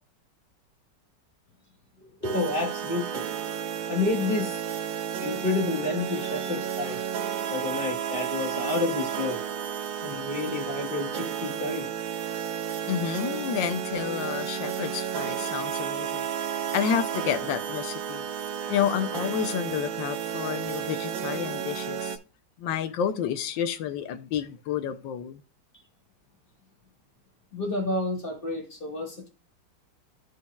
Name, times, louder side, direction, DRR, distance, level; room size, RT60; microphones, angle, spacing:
voice 1, 2.0-3.2 3.9-4.6 5.2-7.0 7.5-9.4 10.0-11.9 27.5-29.3, left 3 dB, 30° left, 1.5 m, -30 dB
sound 1, 2.2-22.2, right 8 dB, 90° right, 1.5 m, -32 dB
voice 2, 12.9-16.3 16.7-18.3 18.7-22.2 22.6-25.4, left 9 dB, 90° left, 1.4 m, -30 dB
13.0 x 4.6 x 2.3 m
omnidirectional pair, 2.0 m